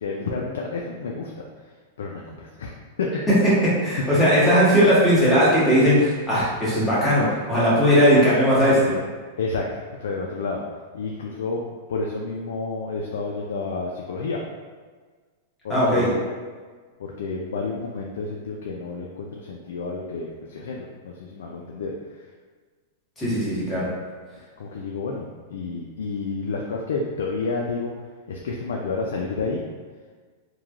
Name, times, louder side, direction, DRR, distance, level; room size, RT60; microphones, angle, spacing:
voice 1, 0.0-1.3 2.0-2.7 3.0-3.1 9.4-9.6 10.0-10.6 10.9-11.6 11.9-14.4 15.6-16.1 17.0-21.9 24.6-27.9 28.3-29.6, left 4 dB, 90° left, -1 dB, 0.3 m, -30 dB
voice 2, 3.8-8.9 15.7-16.1 23.2-23.9, equal, 10° left, -10 dB, 1.1 m, -18 dB
3.0 x 2.2 x 2.4 m, 1.5 s
supercardioid pair, 145°, 0 cm